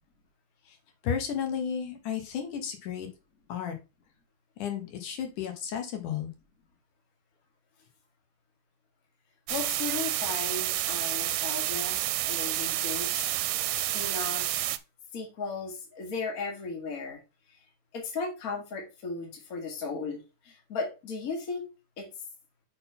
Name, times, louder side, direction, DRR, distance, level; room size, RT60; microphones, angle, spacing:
voice 1, 1.0-3.1 3.5-3.7 4.6-6.3, left 8 dB, 75° left, 5 dB, 2.8 m, -33 dB
voice 2, 9.5-13.4 13.9-14.7 15.1-17.2 17.9-21.7 22.0-22.1, left 4 dB, 30° left, 2 dB, 2.0 m, -36 dB
sound 1, 9.5-14.8, right 15 dB, 85° right, 2.1 m, -29 dB
6.5 x 4.0 x 5.6 m, 0.28 s
omnidirectional pair, 3.6 m